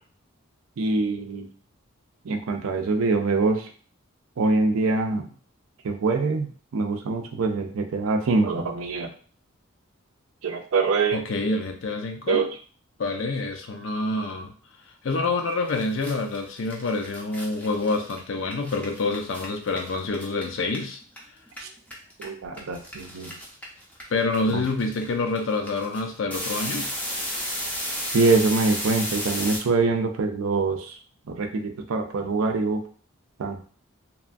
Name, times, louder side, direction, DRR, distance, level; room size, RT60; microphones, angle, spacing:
voice 1, 0.8-1.5 2.2-3.7 4.4-5.3 5.8-6.5 6.7-9.1 10.4-11.2 12.3-12.5 21.6-21.7 22.2-23.3 24.5-24.6 28.1-31.0 31.3-32.9 33.4-33.6, right 3 dB, 75° right, 5 dB, 0.4 m, -24 dB
voice 2, 11.1-12.5 13.0-14.5 15.0-21.0 24.1-26.9, left 3 dB, 60° left, 4 dB, 0.5 m, -27 dB
sound 1, 15.4-15.5 15.7-21.2 21.5-29.6, equal, 5° left, 0.5 m, -33 dB
3.0 x 2.3 x 2.5 m, 0.43 s
head